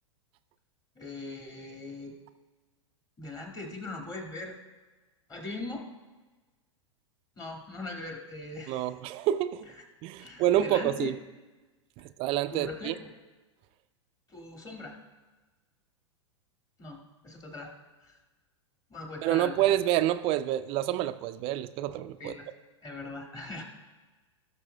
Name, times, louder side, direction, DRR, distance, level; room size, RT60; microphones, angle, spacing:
voice 1, 1.0-2.2 3.2-4.6 5.3-5.9 7.4-8.9 10.2-11.1 12.5-13.1 14.3-15.0 16.8-17.7 18.0-18.2 18.9-19.7 22.2-22.5 22.8-23.6, left 2 dB, 20° left, 2.0 m, -40 dB
voice 2, 8.7-9.6 10.0-11.2 12.2-12.9 19.2-22.3, right 12 dB, 35° right, 0.4 m, -28 dB
17.5 x 6.6 x 2.2 m
figure-of-eight pair, 100°, 16 cm